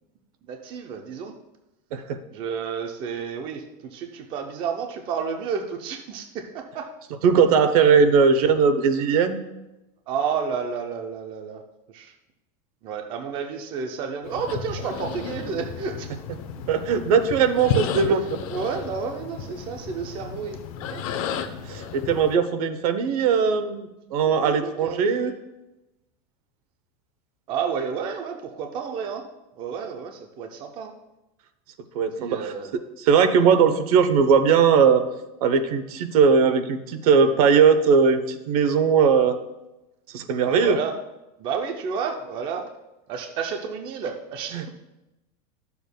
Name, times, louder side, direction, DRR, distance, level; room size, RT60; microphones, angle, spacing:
voice 1, 0.5-1.3 2.3-6.9 10.1-11.6 11.9-12.1 12.8-16.1 18.1-20.6 20.9-21.0 24.3-25.0 25.2-25.4 27.5-29.3 29.6-30.9 32.2-32.7 40.5-40.9 41.4-42.6 43.1-44.6, right 6 dB, 25° right, 4 dB, 0.5 m, -31 dB
voice 2, 7.2-9.4 16.7-18.2 21.6-25.3 31.9-32.5 33.0-35.0 35.4-39.4 40.1-40.8 44.5-44.6, right 6 dB, 65° right, 9 dB, 0.8 m, -19 dB
sound 1, 14.2-22.3, left 6 dB, 60° left, 0.7 m, -33 dB
12.0 x 6.9 x 2.2 m, 0.96 s
supercardioid pair, 180°, 20 cm